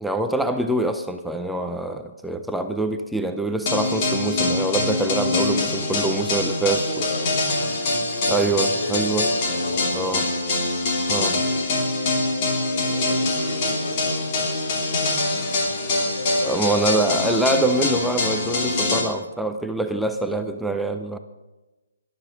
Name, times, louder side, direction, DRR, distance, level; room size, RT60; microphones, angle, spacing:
voice 1, 0.0-7.1 8.3-9.3 9.9-10.2 11.1-11.4 16.4-21.2, right 2 dB, ahead, 6 dB, 0.4 m, -25 dB
sound 1, 3.7-19.0, left 2 dB, 30° left, 2.7 m, -24 dB
voice 2, 5.3-5.7 6.7-7.4 8.3-9.1 9.5-10.0 12.6-15.1 15.5-17.4 20.3-20.4, left 2 dB, 75° left, 2 dB, 6.0 m, -35 dB
14.0 x 12.0 x 6.4 m, 1.1 s
hypercardioid pair, 165°, 0 cm